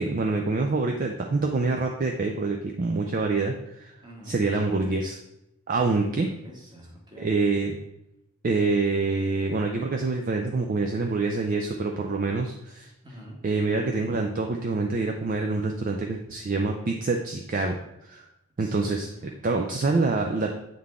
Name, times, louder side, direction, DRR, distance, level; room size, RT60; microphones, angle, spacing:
voice 1, 0.0-3.9 4.2-5.2 5.7-6.3 7.2-7.8 8.4-12.9 13.4-17.8 18.0-18.3 18.6-20.5, right 3 dB, 35° right, 3 dB, 0.4 m, -26 dB
voice 2, 4.0-4.3 6.0-6.2 6.4-7.3 13.0-13.4 18.6-18.8 19.2-19.3, right 1 dB, 20° right, -2 dB, 1.3 m, -45 dB
7.6 x 3.9 x 3.5 m, 0.87 s
head